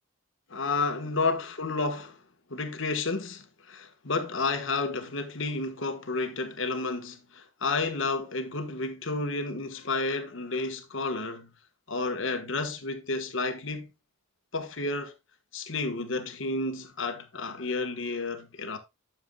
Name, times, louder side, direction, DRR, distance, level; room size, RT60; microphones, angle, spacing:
voice 1, 0.5-2.2 2.5-11.5 11.9-13.9 14.5-15.1 15.5-18.8, left 3 dB, 60° left, 1.4 m, -31 dB
12.0 x 7.1 x 2.3 m
head